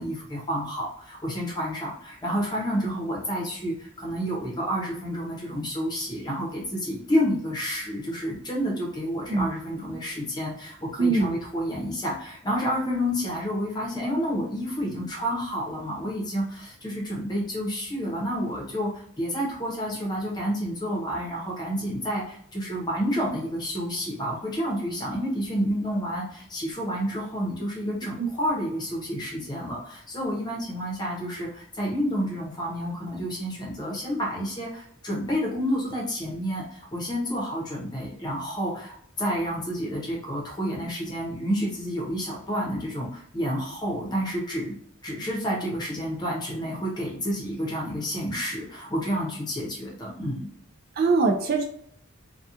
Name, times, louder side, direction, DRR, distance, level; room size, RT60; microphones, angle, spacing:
voice 1, 0.0-44.8 45.0-50.5, equal, 20° left, -3 dB, 0.7 m, -29 dB
voice 2, 11.0-11.3 28.2-28.3 51.0-51.6, right 3 dB, 45° right, 3 dB, 0.3 m, -22 dB
2.8 x 2.2 x 2.4 m, 0.64 s
head